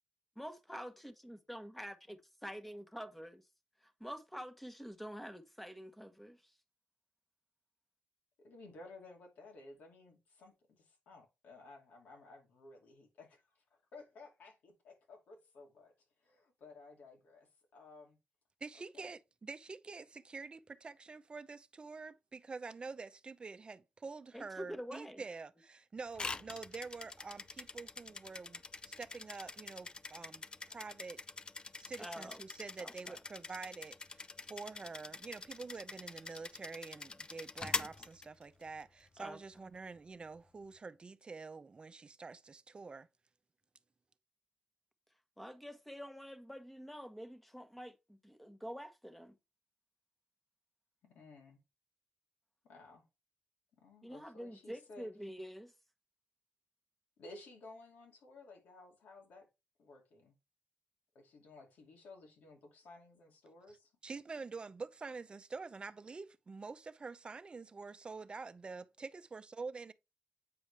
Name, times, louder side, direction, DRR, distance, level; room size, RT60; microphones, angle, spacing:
voice 1, 0.4-2.0 2.4-3.4 3.8-6.5 24.3-25.2 32.0-32.4 32.8-33.2 39.2-39.6 45.4-49.4 54.0-55.7, equal, 5° left, 1.2 m, -47 dB
voice 2, 8.4-13.6 13.9-15.9 16.2-18.2 18.9-19.1 51.0-51.6 52.6-53.0 53.8-55.1 57.2-59.5 59.8-60.3 61.1-63.9, left 3 dB, 85° left, 2.6 m, -56 dB
voice 3, 18.6-31.2 31.8-43.1 64.0-69.9, right 4 dB, 35° right, 0.7 m, -47 dB
sound 1, 26.1-38.8, left 3 dB, 35° left, 0.5 m, -45 dB
8.6 x 4.9 x 3.4 m
cardioid pair, 80°, 3 cm